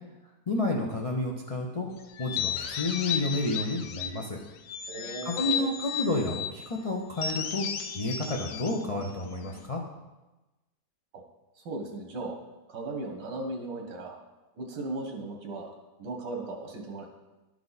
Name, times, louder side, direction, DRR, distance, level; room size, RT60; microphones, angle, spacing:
voice 1, 0.5-1.9 2.2-4.4 5.2-7.7 7.9-9.8, left 2 dB, 55° left, -1 dB, 0.3 m, -30 dB
sound 1, 2.2-4.3 4.7-6.6 7.2-9.7, left 8 dB, 85° left, 1.3 m, -34 dB
voice 2, 4.9-5.7 11.1-11.2 11.6-12.4 12.7-14.2 14.6-15.7 16.0-17.1, right 2 dB, 90° right, 2 dB, 1.9 m, -37 dB
12.0 x 4.7 x 4.0 m, 1.1 s
omnidirectional pair, 1.9 m